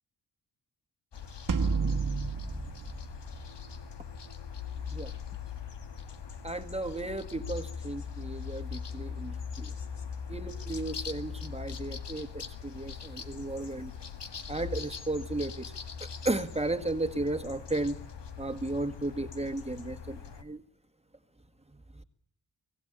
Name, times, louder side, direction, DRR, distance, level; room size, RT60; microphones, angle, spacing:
sound 1, 1.1-20.4, left 6 dB, 75° left, 1.9 m, -41 dB
sound 2, 1.5-4.0, right 4 dB, 50° right, 1.7 m, -31 dB
voice 1, 6.4-9.7 10.3-13.9 14.5-15.7 16.0-18.0 18.4-20.6, right 2 dB, 15° right, 8 dB, 1.8 m, -34 dB
24.5 x 18.0 x 8.7 m, 0.70 s
cardioid pair, 65°, 42 cm